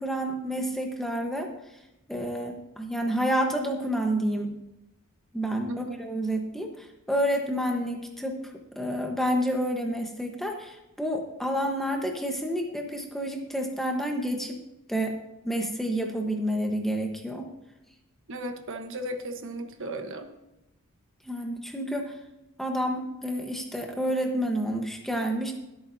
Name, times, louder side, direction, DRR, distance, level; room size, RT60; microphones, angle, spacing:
voice 1, 0.0-1.5 2.1-4.6 5.3-8.4 8.8-14.6 14.9-15.2 15.4-17.5 21.2-22.2 22.6-25.5, equal, ahead, 2 dB, 1.2 m, -29 dB
voice 2, 5.7-6.0 18.3-20.3, right 1 dB, 60° right, 5 dB, 1.2 m, -35 dB
21.5 x 8.7 x 2.8 m, 0.92 s
head